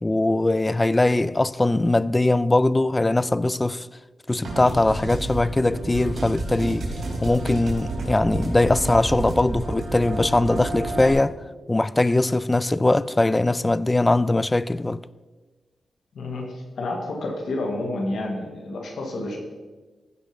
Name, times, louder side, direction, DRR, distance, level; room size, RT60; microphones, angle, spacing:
voice 1, 0.0-3.9 4.3-6.9 7.2-11.4 11.7-15.0, left 2 dB, 20° left, 0.3 m, -21 dB
sound 1, 4.4-11.1, right 2 dB, 65° right, 3.4 m, -30 dB
voice 2, 16.1-19.4, left 2 dB, 80° left, 2.3 m, -29 dB
15.5 x 5.4 x 5.2 m
cardioid pair, 80°, 0 cm